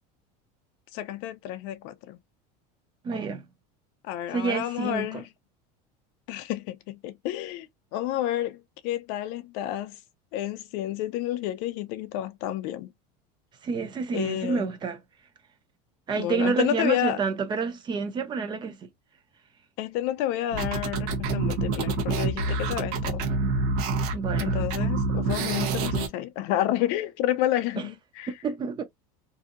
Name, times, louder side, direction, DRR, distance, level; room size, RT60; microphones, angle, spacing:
voice 1, 0.9-2.2 4.1-5.2 6.3-7.7 7.9-8.6 8.8-10.0 10.3-12.9 14.1-14.7 16.1-17.2 19.8-23.3 24.4-28.3, left 13 dB, 55° left, 0.5 m, -30 dB
voice 2, 3.0-3.4 4.3-5.2 13.6-15.0 16.1-18.8 24.1-24.5 27.8-27.9 28.4-28.8, right 5 dB, 20° right, 0.6 m, -28 dB
sound 1, 20.5-26.1, right 3 dB, 75° right, 0.9 m, -27 dB
2.7 x 2.6 x 2.4 m
supercardioid pair, 155°, 20 cm